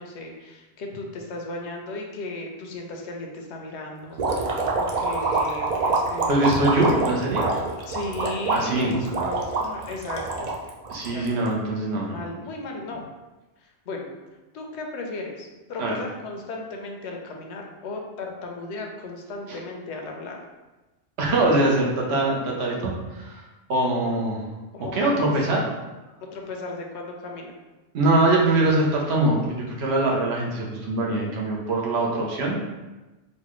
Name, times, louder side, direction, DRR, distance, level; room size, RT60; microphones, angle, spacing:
voice 1, 0.0-6.5 7.9-10.6 11.1-11.4 12.1-13.0 13.6-14.1 14.5-20.4 24.7-25.3 26.2-27.5, left 2 dB, 80° left, 1 dB, 0.9 m, -35 dB
sound 1, 4.2-11.5, right 3 dB, 55° right, 0.5 m, -26 dB
voice 2, 6.3-7.4 8.5-9.0 10.9-12.2 15.8-15.9 21.2-23.4 23.7-24.4 24.9-25.7 27.9-32.6, right 2 dB, 75° right, -2 dB, 1.0 m, -23 dB
4.2 x 2.2 x 3.0 m, 1.1 s
omnidirectional pair, 1.1 m